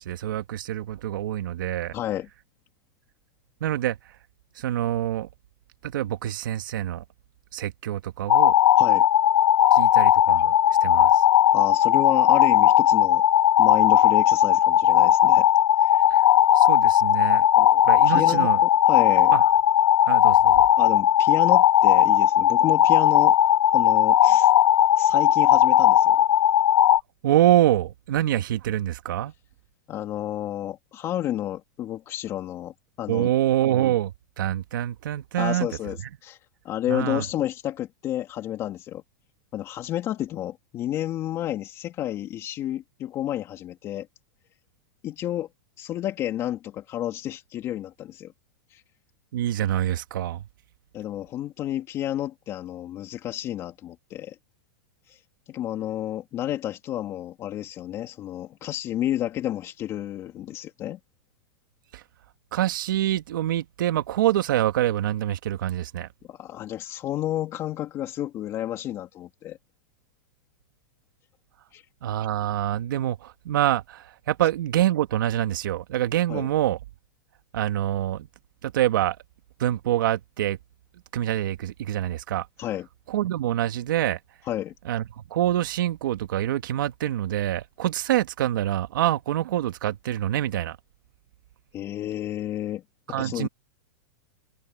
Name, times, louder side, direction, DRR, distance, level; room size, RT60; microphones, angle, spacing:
voice 1, 0.0-1.9 3.6-4.0 4.6-5.3 5.8-7.0 7.5-8.6 9.7-10.5 10.8-11.2 16.5-17.5 17.8-18.6 19.3-19.4 20.0-20.6 27.2-29.3 33.1-35.7 36.9-37.2 49.3-50.4 61.9-62.0 62.5-66.1 72.0-76.8 77.5-78.3 78.6-79.2 79.6-80.6 81.1-82.5 83.1-84.2 84.8-90.8 93.1-93.5, right 12 dB, 70° right, 2.1 m, -25 dB
voice 2, 1.9-2.3 8.8-9.0 11.5-13.2 13.6-15.5 15.8-16.1 17.6-19.3 20.8-23.4 23.7-24.5 25.0-26.2 29.9-33.3 35.4-36.4 36.6-39.0 39.5-44.1 45.0-45.5 45.8-48.3 48.7-48.8 50.9-54.4 55.1-55.2 55.5-61.0 66.3-69.6 71.7-71.8 76.3-76.5 82.6-82.9 84.5-84.7 91.7-92.8 93.1-93.5, left 12 dB, 25° left, 2.5 m, -31 dB
sound 1, 8.3-27.0, left 11 dB, 90° left, 0.7 m, -18 dB
supercardioid pair, 160°, 11 cm